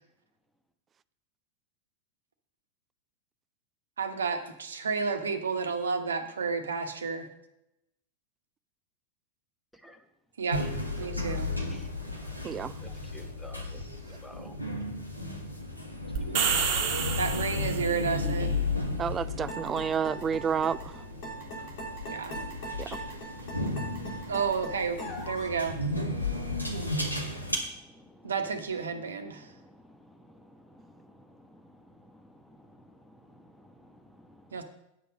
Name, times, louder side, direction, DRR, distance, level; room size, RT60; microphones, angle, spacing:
voice 1, 4.0-7.3 10.4-10.6 11.0-11.5 17.1-18.5 22.1-22.4 24.3-25.8 26.2-26.4 28.2-29.5 34.5-34.6, right 5 dB, 70° right, 1.1 m, -31 dB
sound 1, 10.5-27.6, left 2 dB, 90° left, 1.6 m, -34 dB
voice 2, 12.8-13.7 14.2-14.5 16.5-16.9 18.1-18.4 21.3-24.3 26.1-28.3 29.1-34.6, left 1 dB, 5° left, 1.2 m, -53 dB
sound 2, 16.2-18.1, right 7 dB, 45° right, 1.4 m, -29 dB
voice 3, 19.0-20.9 22.8-22.9, right 7 dB, 25° right, 0.3 m, -30 dB
sound 3, 19.5-25.6, right 1 dB, 45° left, 3.3 m, -40 dB
9.4 x 6.8 x 5.2 m
figure-of-eight pair, 90°, 0 cm